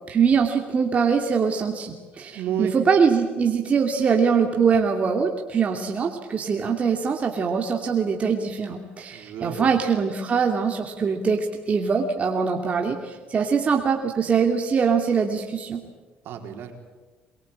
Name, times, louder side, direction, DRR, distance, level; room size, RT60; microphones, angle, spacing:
voice 1, 0.1-15.8, right 6 dB, 35° right, 2 dB, 2.7 m, -23 dB
voice 2, 2.3-2.8 9.1-9.7 16.2-16.7, right 8 dB, 70° right, 4 dB, 4.5 m, -30 dB
23.5 x 22.5 x 8.9 m, 1.3 s
cardioid pair, 110°, 4 cm